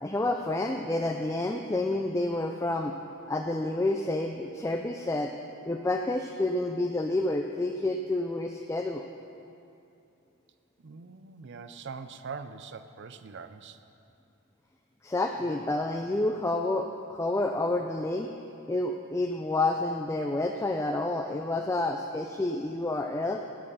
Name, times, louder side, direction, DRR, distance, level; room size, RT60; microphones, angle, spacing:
voice 1, 0.0-2.9 3.3-5.3 5.6-9.1 15.0-18.3 18.7-23.4, left 2 dB, 15° left, 3 dB, 0.4 m, -29 dB
voice 2, 10.8-13.8, right 5 dB, 55° right, 10 dB, 0.5 m, -42 dB
14.0 x 7.6 x 5.6 m, 2.7 s
head